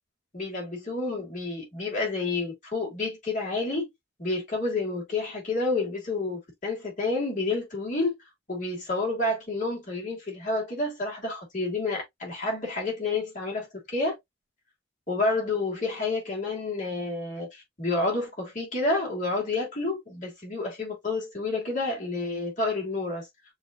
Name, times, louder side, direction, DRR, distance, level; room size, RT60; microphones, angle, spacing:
voice 1, 0.3-3.8 4.2-8.1 8.5-14.2 15.1-23.3, left 3 dB, 40° left, 2.7 m, -29 dB
6.8 x 3.0 x 2.3 m
head